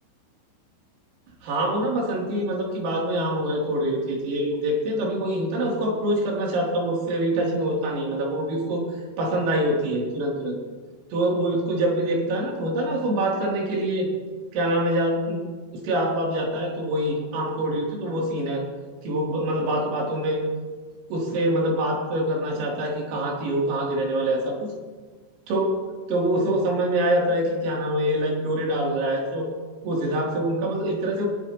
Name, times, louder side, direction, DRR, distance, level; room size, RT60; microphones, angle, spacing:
voice 1, 1.4-8.8 9.2-10.6 11.1-14.1 14.5-15.4 15.7-18.6 19.0-20.4 21.1-24.7 25.5-25.7 26.1-29.5 29.8-31.3, right 1 dB, 85° right, -2 dB, 6.0 m, -25 dB
22.5 x 19.5 x 3.1 m, 1.5 s
omnidirectional pair, 5.8 m